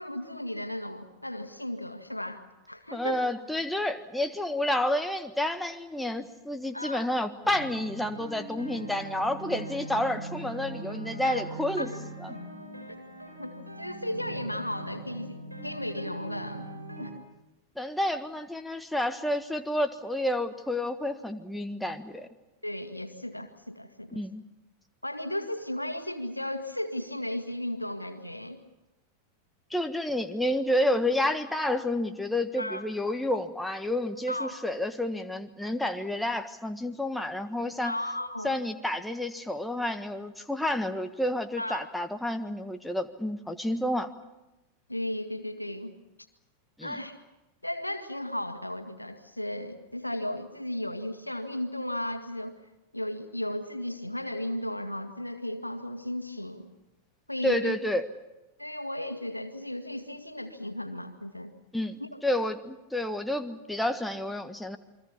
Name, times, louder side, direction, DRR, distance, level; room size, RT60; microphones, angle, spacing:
voice 1, 0.0-3.3 6.7-7.1 11.2-11.4 11.8-12.0 13.4-16.7 17.0-17.2 22.6-24.2 25.0-28.6 32.6-32.9 34.3-34.6 37.8-38.6 41.6-41.9 44.9-45.9 46.8-47.2 47.6-52.5 52.9-56.7 57.3-57.8 58.6-61.5 62.0-62.2, left 1 dB, 85° left, 7 dB, 2.0 m, -35 dB
voice 2, 2.9-11.9 12.2-12.3 17.8-22.3 24.1-24.4 29.7-37.9 38.4-44.1 46.8-47.0 57.4-58.1 61.7-64.8, left 1 dB, 5° left, 7 dB, 1.5 m, -30 dB
sound 1, 7.4-17.1, right 1 dB, 90° right, 5.3 m, -41 dB
29.0 x 22.5 x 7.2 m, 0.99 s
figure-of-eight pair, 90°, 0 cm